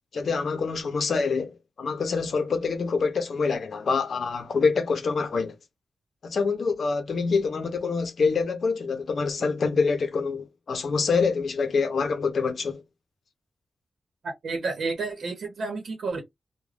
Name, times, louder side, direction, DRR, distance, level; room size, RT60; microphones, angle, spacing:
voice 1, 0.1-5.6 6.2-12.8, left 4 dB, 70° left, 0.6 m, -26 dB
voice 2, 14.4-16.2, right 3 dB, 85° right, 0.9 m, -30 dB
2.4 x 2.2 x 3.3 m
wide cardioid pair, 105°, 0 cm